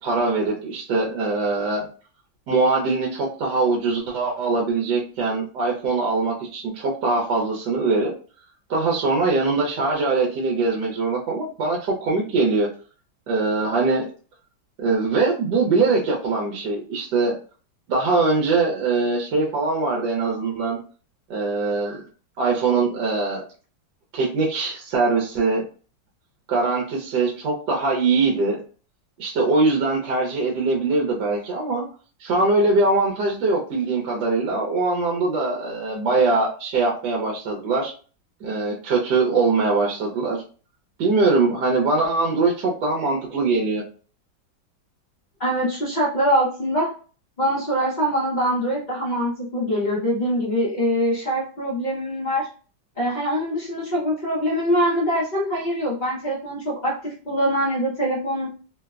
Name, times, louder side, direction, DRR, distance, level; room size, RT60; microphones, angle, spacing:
voice 1, 0.0-1.9 2.5-8.1 8.7-12.7 13.3-14.0 14.8-17.3 17.9-20.8 21.3-22.0 22.4-23.4 24.1-25.7 26.5-28.6 29.2-31.8 32.2-37.9 38.4-40.4 41.0-43.8, right 3 dB, 70° right, -1 dB, 1.3 m, -22 dB
voice 2, 45.4-46.9 47.4-52.5 53.0-58.5, equal, 65° left, -6 dB, 0.4 m, -23 dB
3.2 x 2.1 x 2.3 m, 0.38 s
omnidirectional pair, 2.1 m